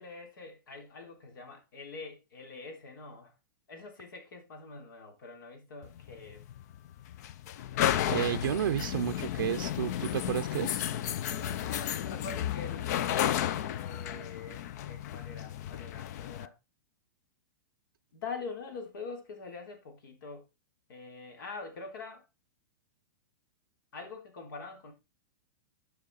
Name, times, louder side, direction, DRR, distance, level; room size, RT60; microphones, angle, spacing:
voice 1, 0.0-3.3 3.7-6.4 11.2-16.5 18.1-20.4 20.9-22.3 23.9-24.9, left 4 dB, 80° left, 3.6 m, -44 dB
sound 1, 5.8-16.5, left 11 dB, 55° left, 0.6 m, -33 dB
voice 2, 8.1-10.8, right 11 dB, 85° right, 0.5 m, -31 dB
10.0 x 5.9 x 4.1 m
hypercardioid pair, 150°, 11 cm